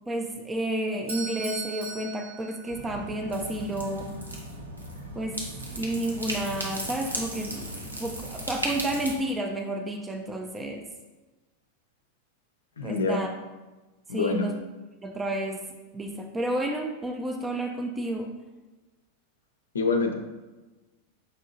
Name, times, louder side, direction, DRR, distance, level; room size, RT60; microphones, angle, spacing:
voice 1, 0.1-4.1 5.2-5.4 5.7-10.8 12.8-13.3 14.1-14.6 15.0-15.7 15.9-18.3, right 1 dB, 15° right, 3 dB, 0.4 m, -31 dB
Bell / Doorbell, 1.1-3.2, right 4 dB, 60° right, 1.1 m, -38 dB
sound 1, 2.7-9.1, right 1 dB, 85° right, 0.7 m, -36 dB
voice 2, 12.8-13.2 14.1-14.5 19.7-20.1, left 4 dB, 70° left, 4 dB, 0.5 m, -25 dB
5.2 x 2.7 x 2.6 m, 1.2 s
figure-of-eight pair, 90°, 0 cm